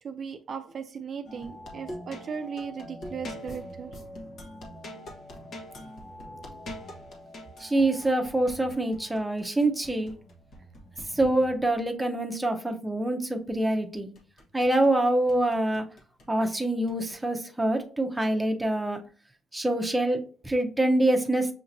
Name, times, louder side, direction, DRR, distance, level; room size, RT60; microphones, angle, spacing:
voice 1, 0.0-4.0, right 6 dB, 50° right, 7 dB, 0.4 m, -37 dB
sound 1, 1.3-11.9 13.7-14.9 15.3-16.3 16.9-17.2, equal, 65° left, 1.3 m, -44 dB
voice 2, 7.6-10.1 11.1-14.1 14.5-15.8 16.3-19.0 19.5-21.5, right 1 dB, 10° right, 4 dB, 0.7 m, -25 dB
6.5 x 2.8 x 2.6 m, 0.42 s
cardioid pair, 90°, 0 cm